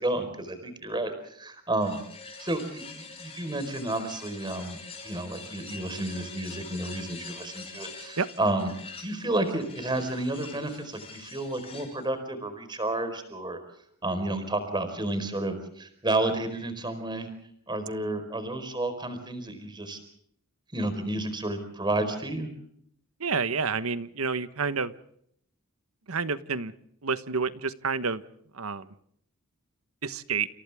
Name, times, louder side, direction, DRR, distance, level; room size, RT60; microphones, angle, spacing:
voice 1, 0.0-2.0 2.4-8.7 9.0-13.6 14.0-17.3 17.7-20.0 20.7-22.5, right 2 dB, 20° right, 9 dB, 4.6 m, -31 dB
sound 1, 1.8-12.1, left 4 dB, 25° left, 5.6 m, -45 dB
voice 2, 23.2-24.9 26.1-26.7 27.0-28.2 28.5-28.9 30.0-30.5, right 5 dB, 75° right, 13 dB, 1.3 m, -29 dB
29.5 x 28.0 x 3.6 m, 0.68 s
head